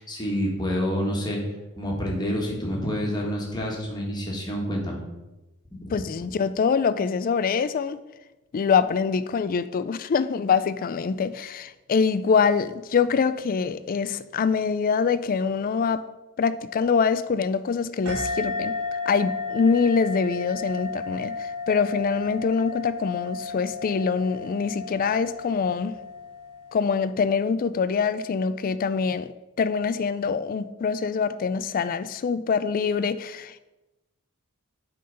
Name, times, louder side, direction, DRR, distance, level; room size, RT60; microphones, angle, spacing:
voice 1, 0.0-1.4 1.7-5.0 5.7-6.0, equal, 20° left, -1 dB, 1.6 m, -28 dB
voice 2, 5.9-8.0 8.5-16.0 16.4-26.0 26.7-29.3 29.6-33.7, left 5 dB, 40° left, 14 dB, 0.3 m, -24 dB
sound 1, 18.1-27.1, left 3 dB, 75° right, 1.5 m, -34 dB
8.5 x 3.8 x 5.3 m, 1.0 s
head